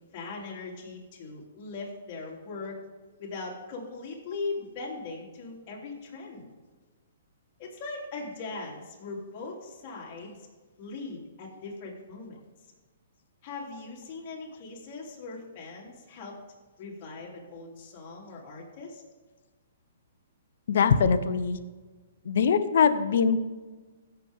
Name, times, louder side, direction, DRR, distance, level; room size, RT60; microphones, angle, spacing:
voice 1, 0.1-2.8 3.2-6.5 7.6-10.5 10.8-12.4 13.4-16.4 16.8-19.0, left 3 dB, 35° left, -3 dB, 3.4 m, -40 dB
voice 2, 20.7-21.6 22.3-23.4, left 6 dB, 65° left, 11 dB, 0.9 m, -22 dB
16.5 x 6.9 x 3.7 m, 1.3 s
hypercardioid pair, 150°, 0 cm